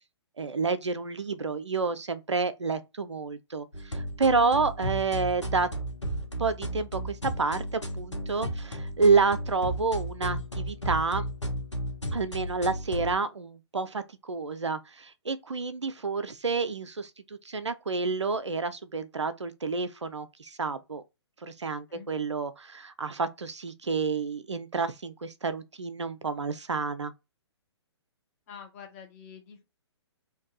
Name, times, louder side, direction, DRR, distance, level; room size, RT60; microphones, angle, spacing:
voice 1, 0.4-5.7 6.4-11.3 12.1-14.0 14.3-17.1 17.5-21.0 21.4-27.1, right 4 dB, 80° right, 0.4 m, -29 dB
sound 1, 3.7-13.1, equal, 90° left, 0.9 m, -34 dB
voice 2, 28.5-29.6, left 7 dB, 30° left, 0.9 m, -46 dB
2.6 x 2.3 x 3.7 m
figure-of-eight pair, 125°, 15 cm